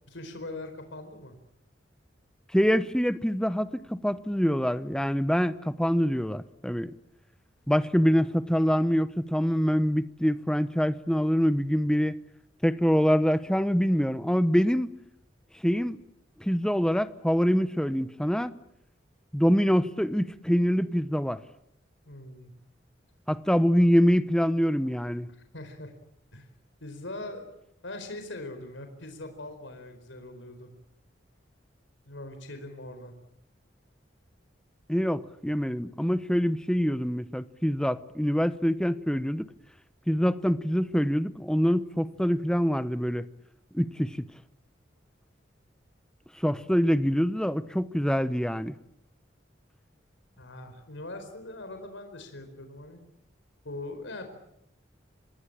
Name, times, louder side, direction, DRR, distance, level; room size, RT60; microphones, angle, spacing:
voice 1, 0.1-1.3 22.0-22.5 25.3-25.9 26.3-26.5 26.8-27.4 27.8-30.7 32.0-33.1 50.4-53.0 53.6-54.3, left 2 dB, 85° left, 7 dB, 4.5 m, -41 dB
voice 2, 2.5-6.9 7.7-12.2 12.6-14.9 15.6-16.0 16.4-18.5 19.3-21.4 23.3-25.3 34.9-39.5 40.1-43.2 43.7-44.2 46.4-48.8, equal, 5° left, 13 dB, 0.9 m, -25 dB
26.5 x 20.0 x 8.9 m, 0.80 s
head